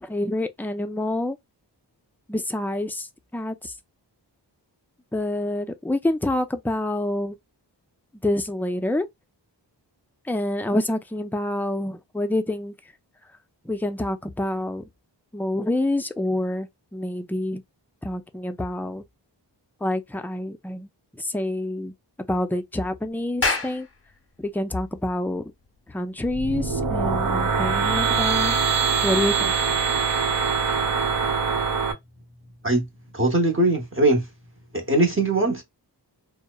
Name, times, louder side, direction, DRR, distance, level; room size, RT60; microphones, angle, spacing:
voice 1, 0.0-1.4 2.3-3.8 5.1-7.4 8.2-9.1 10.2-12.7 13.6-14.9 15.3-17.6 18.0-19.0 19.8-21.9 22.3-23.9 24.4-25.5 25.9-28.6 29.0-29.5, left 1 dB, 5° left, 0.3 m, -27 dB
Clapping, 23.2-28.1, left 3 dB, 30° left, 0.8 m, -32 dB
sound 1, 26.2-31.9, right 5 dB, 70° right, 1.0 m, -23 dB
voice 2, 33.1-34.3 34.7-35.6, right 2 dB, 30° right, 0.8 m, -21 dB
2.7 x 2.0 x 2.2 m
wide cardioid pair, 50°, 44 cm